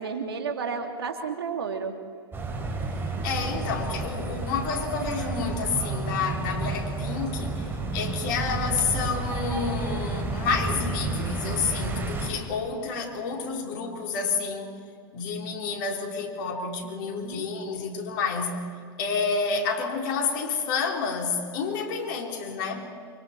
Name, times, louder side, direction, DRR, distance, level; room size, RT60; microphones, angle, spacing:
voice 1, 0.0-1.9 16.8-17.5, right 5 dB, 90° right, 2.9 m, -32 dB
sound 1, 2.3-12.3, right 3 dB, 20° right, 5.2 m, -31 dB
voice 2, 3.2-14.7 15.1-18.6 19.0-22.9, left 5 dB, 60° left, 4.6 m, -29 dB
28.5 x 25.5 x 4.7 m
hypercardioid pair, 110°, 12 cm